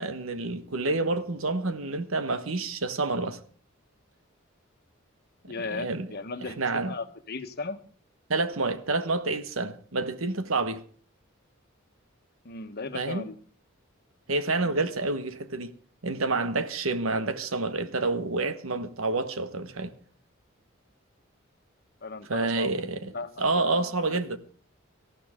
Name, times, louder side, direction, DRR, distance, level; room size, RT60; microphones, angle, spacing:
voice 1, 0.0-3.4 5.7-6.1 6.6-6.9 8.3-10.8 12.9-13.2 14.3-15.7 16.0-19.9 22.3-23.1 23.4-24.4, right 3 dB, 85° right, 1.3 m, -28 dB
voice 2, 5.5-7.8 12.4-13.4 14.6-14.8 22.0-24.4, left 3 dB, 50° left, 1.3 m, -37 dB
19.0 x 14.0 x 3.7 m
head